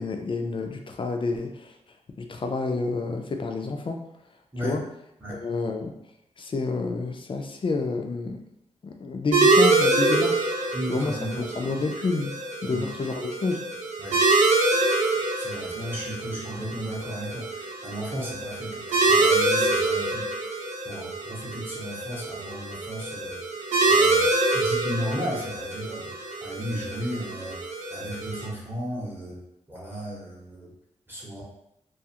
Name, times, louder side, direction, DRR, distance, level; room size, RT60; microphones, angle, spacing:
voice 1, 0.0-1.7 2.2-4.0 4.6-4.8 5.3-5.9 6.4-8.4 8.8-13.6, left 3 dB, 45° left, 4 dB, 0.4 m, -29 dB
sound 1, 9.3-28.5, right 2 dB, 75° right, 0.5 m, -25 dB
voice 2, 10.7-11.4 12.7-12.8 14.0-14.2 15.3-20.2 20.8-27.6 27.9-29.4 29.7-30.7 31.1-31.4, equal, 15° right, -5 dB, 0.8 m, -35 dB
2.4 x 2.4 x 2.8 m, 0.82 s
wide cardioid pair, 80°, 12 cm